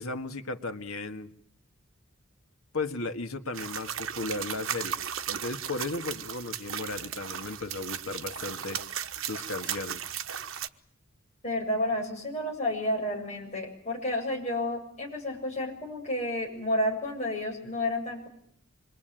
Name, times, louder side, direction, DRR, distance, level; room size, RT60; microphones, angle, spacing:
voice 1, 0.0-1.3 2.7-5.0 5.3-8.8 9.2-10.0, left 3 dB, 90° left, 8 dB, 1.8 m, -35 dB
sound 1, 3.5-10.7, right 9 dB, 70° right, 1.1 m, -36 dB
voice 2, 11.4-18.3, left 1 dB, 30° left, 0 dB, 7.8 m, -31 dB
26.5 x 22.0 x 9.1 m, 0.66 s
head